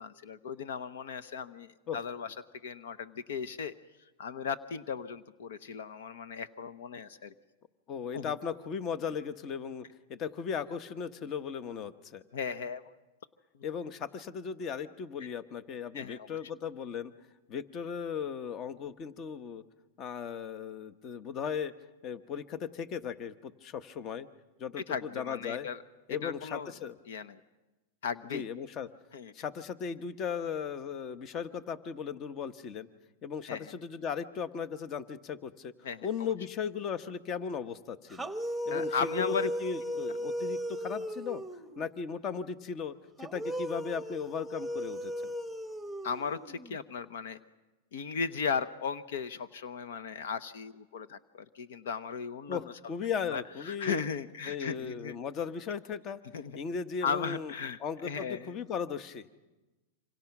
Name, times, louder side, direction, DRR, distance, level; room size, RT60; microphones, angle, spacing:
voice 1, 0.0-2.3 2.6-3.7 4.2-7.3 8.1-8.3 12.3-12.8 15.9-16.3 24.9-25.8 26.2-26.7 27.1-27.4 28.0-28.4 29.1-29.3 33.5-33.7 35.8-36.3 38.7-39.5 46.0-47.4 47.9-52.7 53.3-55.2 56.3-56.5 57.0-58.5, left 6 dB, 75° left, 14 dB, 0.9 m, -36 dB
voice 2, 7.9-12.2 13.6-17.1 17.5-19.6 20.0-21.7 22.0-24.3 24.6-25.7 26.1-26.9 28.2-28.9 29.3-32.9 33.2-35.7 36.0-38.3 38.7-41.4 41.8-45.3 52.5-52.6 52.9-54.0 54.5-56.2 56.5-57.5 57.8-59.3, left 6 dB, 35° left, 13 dB, 1.1 m, -37 dB
sound 1, 38.1-41.9 43.2-46.8, equal, ahead, 1.2 m, -36 dB
27.5 x 25.5 x 6.0 m, 1.1 s
hypercardioid pair, 120°, 0 cm